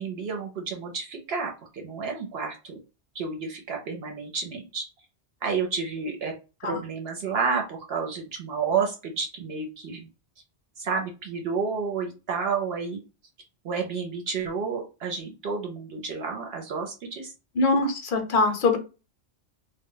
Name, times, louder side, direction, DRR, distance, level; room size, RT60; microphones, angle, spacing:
voice 1, 0.0-2.8 3.1-4.9 5.4-6.3 6.6-10.1 10.8-13.0 13.6-17.3, right 5 dB, 70° right, 0.8 m, -30 dB
voice 2, 17.6-18.8, left 3 dB, 60° left, 0.7 m, -23 dB
2.1 x 2.1 x 3.7 m
omnidirectional pair, 1.1 m